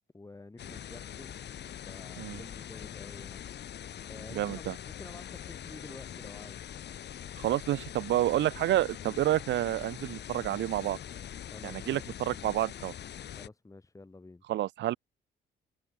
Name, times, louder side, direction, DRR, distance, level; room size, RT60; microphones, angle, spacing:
voice 1, 0.1-1.4 1.9-3.4 4.1-6.6 11.5-12.1 13.4-14.4, left 2 dB, 15° left, 1.8 m, -49 dB
sound 1, 0.6-13.5, left 10 dB, 60° left, 1.3 m, -43 dB
voice 2, 4.3-4.7 7.4-11.0 11.6-12.9 14.5-15.0, right 14 dB, 65° right, 0.5 m, -29 dB
cardioid pair, 90°, 20 cm